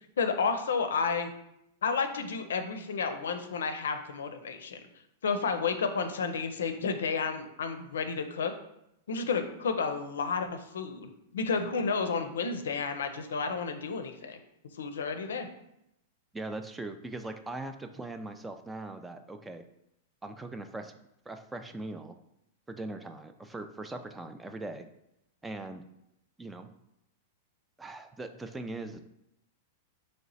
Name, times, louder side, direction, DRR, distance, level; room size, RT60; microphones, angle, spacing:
voice 1, 0.2-1.3 1.8-4.8 5.2-8.5 9.1-14.4 14.8-15.5, left 5 dB, 85° left, 8 dB, 0.4 m, -31 dB
voice 2, 16.3-19.6 20.2-20.9 21.3-22.2 22.7-24.9 25.4-25.8 26.4-26.7 27.8-29.0, right 2 dB, 10° right, 7 dB, 0.3 m, -40 dB
3.1 x 2.9 x 4.0 m, 0.81 s
hypercardioid pair, 120°, 0 cm